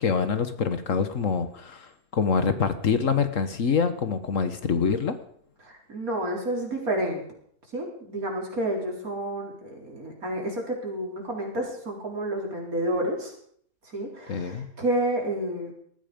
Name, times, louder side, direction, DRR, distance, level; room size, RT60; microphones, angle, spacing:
voice 1, 0.0-5.2 14.3-14.7, left 5 dB, 60° left, 11 dB, 1.5 m, -25 dB
voice 2, 5.6-7.2 7.7-13.3 13.9-15.7, right 1 dB, 65° right, 0 dB, 4.8 m, -30 dB
19.5 x 14.0 x 5.2 m, 0.62 s
omnidirectional pair, 1.6 m